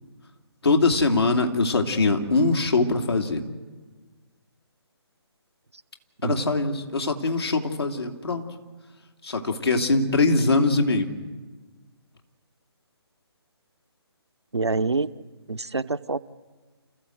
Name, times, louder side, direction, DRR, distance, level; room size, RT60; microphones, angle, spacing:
voice 1, 0.6-3.4 6.2-8.5 9.2-11.1, left 3 dB, 65° left, 3 dB, 2.8 m, -22 dB
voice 2, 14.5-15.2 15.5-16.2, right 3 dB, 80° right, 11 dB, 0.9 m, -26 dB
29.5 x 14.5 x 7.9 m, 1.3 s
figure-of-eight pair, 145°, 14 cm